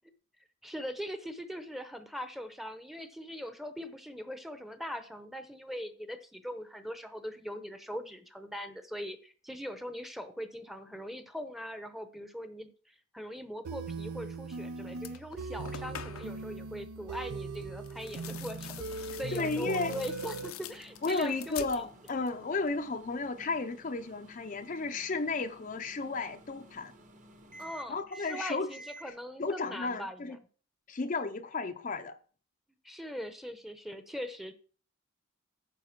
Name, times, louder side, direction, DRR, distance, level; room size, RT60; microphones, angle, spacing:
voice 1, 0.6-18.7 19.2-22.2 27.6-30.4 32.8-34.5, equal, ahead, 0.7 m, -41 dB
sound 1, 13.6-20.5, right 4 dB, 85° right, 0.5 m, -40 dB
sound 2, 14.5-14.6 15.0-16.4 17.8-22.4 22.7-23.3, left 10 dB, 75° left, 0.6 m, -46 dB
Microwave oven, 17.5-29.1, right 1 dB, 35° right, 1.1 m, -53 dB
voice 2, 19.3-19.9 21.0-26.9 27.9-28.7 29.0-29.1 29.4-30.4 30.9-32.2, left 3 dB, 35° left, 0.5 m, -33 dB
9.4 x 5.2 x 5.9 m
head